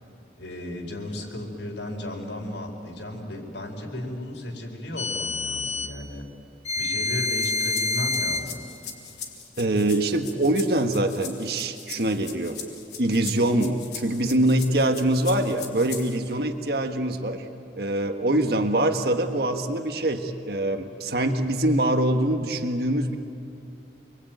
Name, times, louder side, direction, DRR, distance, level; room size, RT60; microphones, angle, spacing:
voice 1, 0.4-6.3 6.8-8.6, left 1 dB, 85° left, 1 dB, 4.9 m, -35 dB
sound 1, 5.0-6.0 6.7-8.5, left 3 dB, 35° left, 1.1 m, -27 dB
sound 2, 7.3-16.3, left 7 dB, 65° left, 3.7 m, -40 dB
voice 2, 9.6-12.6 13.0-17.4 17.7-23.2, right 1 dB, 60° right, 6 dB, 1.5 m, -24 dB
28.0 x 22.0 x 9.3 m, 2.6 s
head